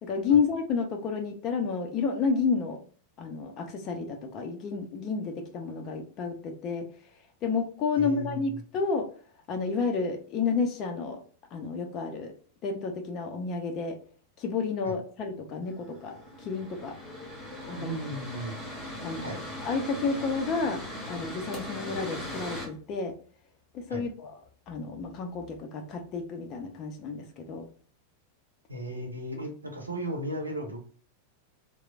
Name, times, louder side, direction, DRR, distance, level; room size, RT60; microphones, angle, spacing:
voice 1, 0.0-2.8 3.2-6.9 7.4-9.1 9.5-11.2 11.5-12.3 12.6-14.0 14.4-16.9 17.6-18.0 19.0-19.3 19.6-20.8 21.1-23.1 23.7-24.3 24.7-27.7, left 5 dB, 35° left, 3 dB, 0.5 m, -30 dB
voice 2, 8.0-8.6 14.8-15.0 17.8-18.6 19.2-19.4 23.9-24.0 28.7-30.8, right 1 dB, 85° right, 1 dB, 0.7 m, -36 dB
Mechanical fan, 15.6-22.7, left 1 dB, 15° left, 1.1 m, -39 dB
3.0 x 2.0 x 2.3 m, 0.44 s
figure-of-eight pair, 90°, 0 cm